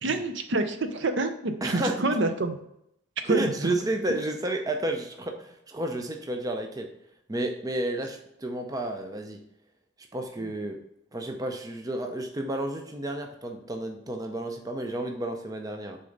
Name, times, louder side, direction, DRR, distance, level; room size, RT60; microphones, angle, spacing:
voice 1, 0.0-2.6 3.2-3.7 10.4-10.5, right 2 dB, 60° right, 8 dB, 0.6 m, -27 dB
voice 2, 1.6-2.0 3.3-6.9 7.3-9.4 10.1-10.8 11.1-16.0, right 1 dB, 20° right, 4 dB, 0.5 m, -31 dB
6.6 x 4.0 x 3.9 m, 0.77 s
head